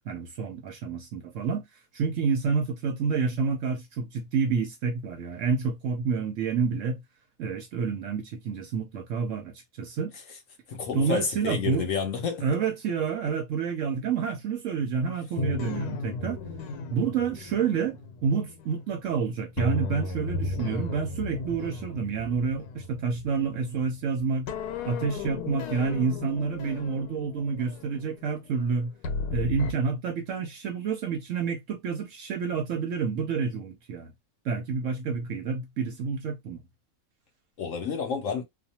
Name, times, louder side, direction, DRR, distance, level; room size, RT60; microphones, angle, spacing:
voice 1, 0.1-1.7 1.9-7.0 7.4-10.1 10.9-11.9 12.4-16.4 16.9-24.5 24.8-28.9 29.3-34.1 34.4-36.6, right 5 dB, 65° right, 0.8 m, -29 dB
voice 2, 10.7-12.5 37.6-38.4, left 6 dB, 60° left, 1.0 m, -30 dB
sound 1, 15.4-19.1 19.6-24.1 24.5-29.7, left 3 dB, 80° left, 1.1 m, -35 dB
2.6 x 2.2 x 2.7 m
omnidirectional pair, 1.7 m